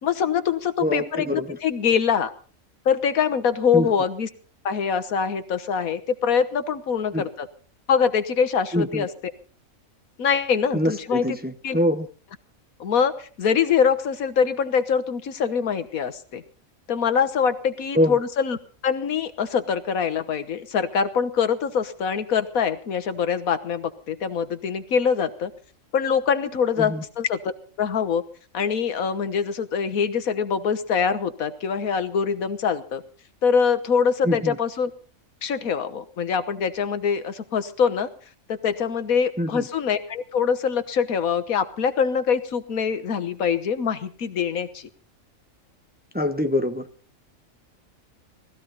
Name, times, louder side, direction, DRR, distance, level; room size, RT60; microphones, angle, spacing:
voice 1, 0.0-2.3 2.8-4.3 4.6-7.5 7.9-9.1 10.2-11.4 11.6-11.8 12.8-16.4 16.9-18.6 18.8-25.5 25.9-27.5 27.8-28.2 28.5-33.0 33.4-34.9 35.4-38.1 38.5-44.9, left 6 dB, 85° left, 11 dB, 1.6 m, -24 dB
voice 2, 0.8-1.6 3.7-3.9 7.1-7.3 8.7-9.1 10.7-12.1 17.9-18.2 26.8-27.0 34.2-34.6 39.4-39.7 46.1-46.9, left 1 dB, 10° right, 7 dB, 0.9 m, -24 dB
19.0 x 14.5 x 4.1 m, 0.40 s
omnidirectional pair, 1.4 m